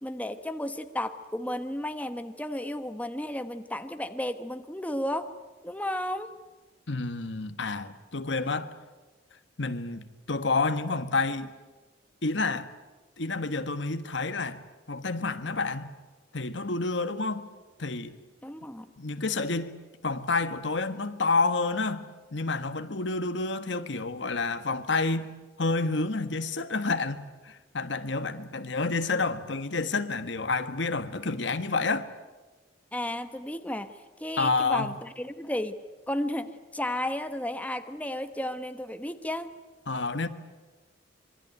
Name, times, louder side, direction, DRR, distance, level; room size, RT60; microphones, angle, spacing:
voice 1, 0.0-5.3 5.6-6.3 18.4-18.9 32.9-35.8 36.1-39.6, left 1 dB, 10° left, 1.2 m, -33 dB
voice 2, 6.9-8.7 9.6-11.5 12.2-12.7 13.2-14.6 14.9-15.9 16.3-17.5 17.8-18.2 19.0-19.8 20.0-22.0 22.3-32.1 34.4-34.9 39.9-40.3, left 3 dB, 70° left, 1.5 m, -29 dB
26.0 x 23.5 x 9.3 m
head